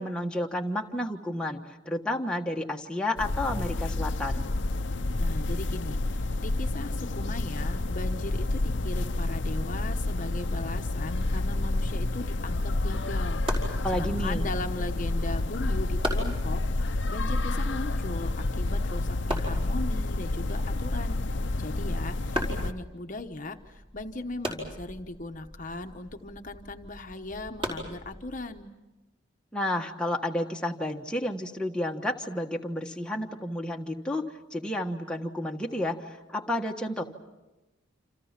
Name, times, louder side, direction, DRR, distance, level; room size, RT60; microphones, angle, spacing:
voice 1, 0.0-1.6 1.8-4.5 13.8-14.5 29.5-34.2 34.5-37.0, left 1 dB, 5° left, 0 dB, 1.4 m, -31 dB
sound 1, 3.2-22.7, left 2 dB, 60° left, 0.8 m, -29 dB
voice 2, 5.2-13.4 13.9-21.2 21.6-28.7, left 2 dB, 40° left, 5 dB, 1.1 m, -38 dB
Wood chopping, 13.4-28.6, equal, 25° right, 4.9 m, -40 dB
28.5 x 28.0 x 5.9 m, 1.1 s
head